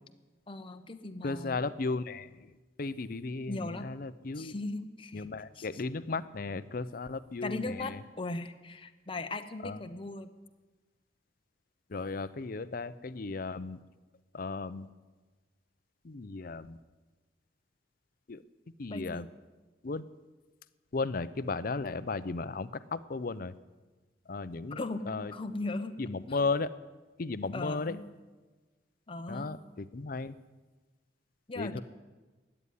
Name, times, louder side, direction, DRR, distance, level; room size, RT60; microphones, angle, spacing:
voice 1, 0.5-1.6 3.5-3.9 4.4-5.7 7.4-10.3 18.9-19.3 24.7-26.0 27.5-28.0 29.1-29.5 31.5-31.8, left 2 dB, 30° left, 8 dB, 0.9 m, -38 dB
voice 2, 1.2-2.5 2.8-4.5 5.1-8.0 9.6-9.8 11.9-13.8 14.3-14.9 16.0-16.8 18.3-18.4 18.8-19.3 19.8-20.0 20.9-23.5 24.3-25.3 26.0-26.7 27.2-28.0 29.3-30.4 31.6-31.8, left 3 dB, 50° left, 15 dB, 0.6 m, -35 dB
14.0 x 9.8 x 9.5 m, 1.3 s
head